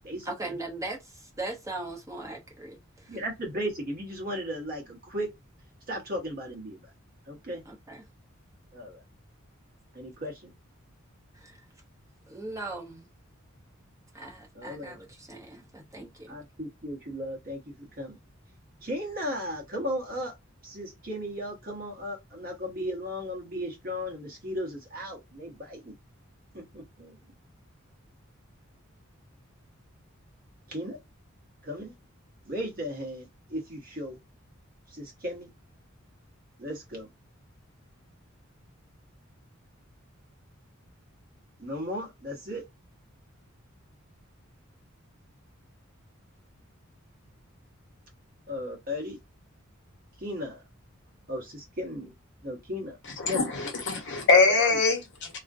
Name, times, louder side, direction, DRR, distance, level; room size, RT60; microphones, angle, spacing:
voice 1, 0.2-3.2 7.6-8.0 11.3-11.6 12.3-13.1 14.1-16.4, right 2 dB, 15° right, 0.7 m, -39 dB
voice 2, 3.1-5.3 5.9-6.8 7.3-7.6 8.7-9.0 9.9-10.5 14.5-15.0 16.3-18.2 18.8-20.3 20.6-25.9 26.5-27.2 30.7-31.0 31.6-31.9 32.4-34.1 34.9-35.5 36.6-37.1 41.6-42.6 48.5-49.2 50.2-50.6 51.3-52.1 52.4-53.0 53.2-53.4 54.1-54.3 54.6-54.7, equal, 45° right, 0.9 m, -35 dB
voice 3, 53.2-55.4, left 3 dB, 60° left, 0.9 m, -23 dB
2.4 x 2.1 x 2.5 m
head